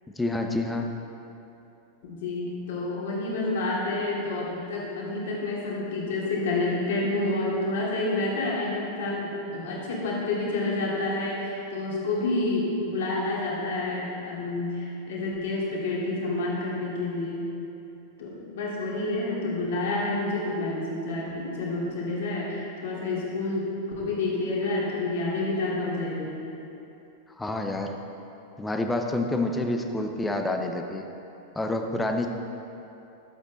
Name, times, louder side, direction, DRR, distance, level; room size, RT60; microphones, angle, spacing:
voice 1, 0.2-0.9 27.4-28.0 28.6-31.1 31.6-32.3, left 2 dB, 10° left, 4 dB, 0.8 m, -28 dB
voice 2, 2.0-17.4 18.2-23.7 24.0-26.4, left 2 dB, 55° left, -5 dB, 2.4 m, -29 dB
11.5 x 7.6 x 4.0 m, 2.9 s
figure-of-eight pair, 90°, 0 cm